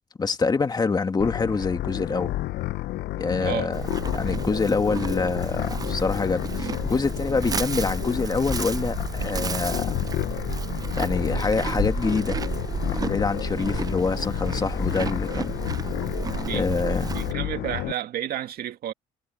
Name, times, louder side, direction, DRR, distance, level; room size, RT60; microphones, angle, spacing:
voice 1, 0.2-2.3 3.2-3.8 4.1-10.0 11.0-12.4 12.9-15.6 16.5-17.2, left 4 dB, 25° left, 1.9 m, -26 dB
sound 1, 1.2-17.9, left 16 dB, 75° left, 0.8 m, -31 dB
voice 2, 3.4-3.7 13.6-13.7 16.4-16.7 17.0-18.9, right 11 dB, 65° right, 2.2 m, -31 dB
Livestock farm animals working animals, 3.7-17.3, right 5 dB, 20° right, 0.5 m, -31 dB
cardioid pair, 110°, 17 cm